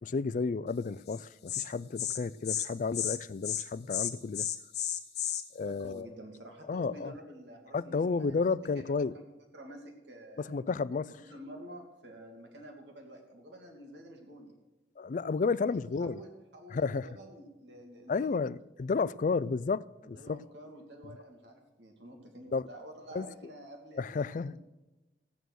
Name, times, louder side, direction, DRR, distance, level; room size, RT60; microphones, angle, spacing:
voice 1, 0.0-4.5 5.5-6.1 6.7-7.1 7.7-9.1 10.5-11.1 15.0-16.2 16.7-17.1 18.1-20.4 22.5-22.7 23.1-23.3 24.0-24.5, left 4 dB, 45° left, 0.3 m, -32 dB
Insect, 1.1-1.2 1.5-1.7 2.0-2.2 2.5-2.7 2.9-3.2 3.4-3.6 3.9-5.4, left 11 dB, 65° left, 1.2 m, -32 dB
voice 2, 5.6-8.4 8.7-9.2 9.5-10.6 11.1-14.6 15.5-18.3 20.1-24.6, equal, 85° right, 2.6 m, -49 dB
16.0 x 9.1 x 6.3 m
head